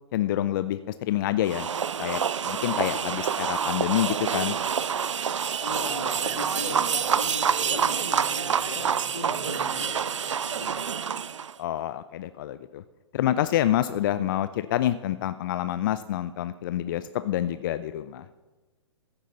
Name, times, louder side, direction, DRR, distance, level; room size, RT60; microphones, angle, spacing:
voice 1, 0.1-1.7 2.0-4.6 11.6-12.8 13.1-18.3, left 12 dB, 45° left, 13 dB, 0.5 m, -27 dB
sound 1, 1.4-11.5, right 7 dB, 80° right, 0.4 m, -27 dB
voice 2, 5.6-11.0, left 3 dB, 85° left, 4 dB, 2.4 m, -39 dB
15.5 x 10.0 x 4.0 m, 1.2 s
figure-of-eight pair, 120°, 15 cm